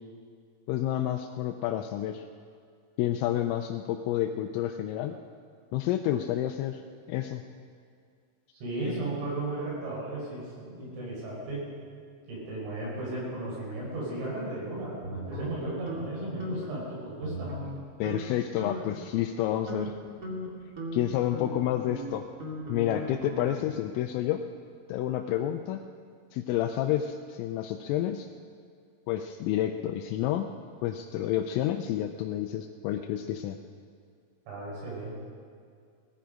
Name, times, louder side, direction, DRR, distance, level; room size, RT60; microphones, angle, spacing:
voice 1, 0.7-2.2 3.0-5.2 5.7-6.8 7.1-7.4 18.0-19.9 20.9-22.2 22.7-24.4 24.9-25.8 26.3-28.3 29.1-30.5 30.8-33.6, left 12 dB, 85° left, 4 dB, 3.2 m, -29 dB
voice 2, 8.6-11.6 12.3-17.5 34.5-35.1, right 2 dB, 90° right, -5 dB, 7.7 m, -35 dB
sound 1, 15.0-16.1 16.4-16.8 17.2-17.8 18.0-18.2 18.6-19.0 19.4-23.8, equal, 35° right, 1.5 m, -38 dB
19.0 x 14.0 x 5.1 m, 2.2 s
omnidirectional pair, 5.7 m